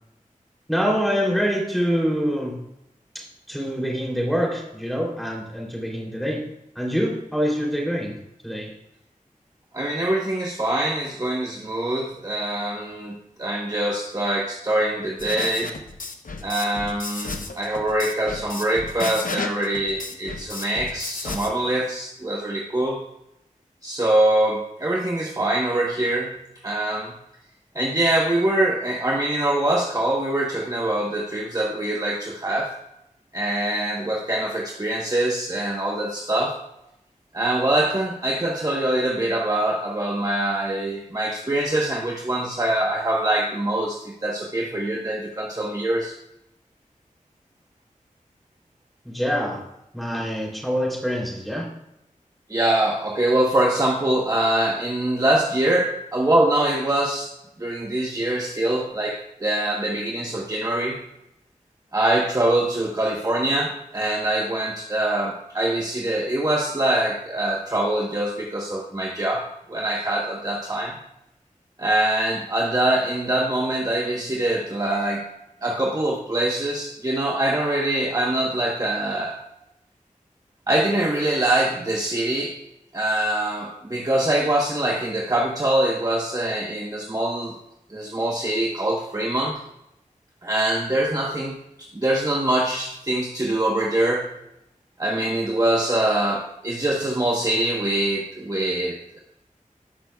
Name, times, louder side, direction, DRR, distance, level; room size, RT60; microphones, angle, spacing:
voice 1, 0.7-2.6 3.1-6.4 6.7-8.1 8.4-8.7 49.0-49.6 49.9-51.7, equal, ahead, -3 dB, 3.0 m, -25 dB
voice 2, 9.7-15.7 16.4-23.0 23.8-26.4 26.6-27.1 27.7-32.7 33.3-36.6 37.3-46.1 52.5-57.3 57.6-61.0 61.9-71.0 71.8-75.2 75.6-79.4 80.7-82.6 82.9-87.5 87.9-89.6 90.4-91.6 91.9-94.3 95.0-99.2, right 1 dB, 25° right, -1 dB, 1.1 m, -24 dB
sound 1, 15.2-21.5, left 3 dB, 75° left, 0.9 m, -33 dB
17.5 x 6.0 x 2.3 m, 0.83 s
wide cardioid pair, 55°, 14 cm